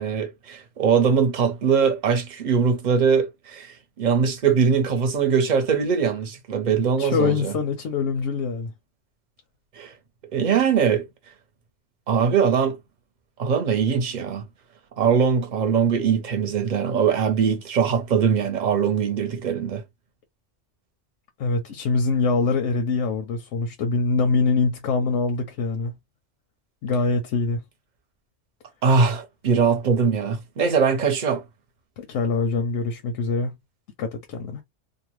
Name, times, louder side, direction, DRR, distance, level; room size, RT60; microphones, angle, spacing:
voice 1, 0.0-7.5 9.8-9.9 10.3-11.1 12.1-12.8 13.4-14.4 15.0-19.8 28.8-31.4, right 6 dB, 45° right, 0.7 m, -21 dB
voice 2, 7.0-8.7 21.4-25.9 26.8-27.6 32.0-33.5 34.0-34.6, left 4 dB, 85° left, 0.9 m, -24 dB
2.6 x 2.1 x 3.0 m
omnidirectional pair, 1.2 m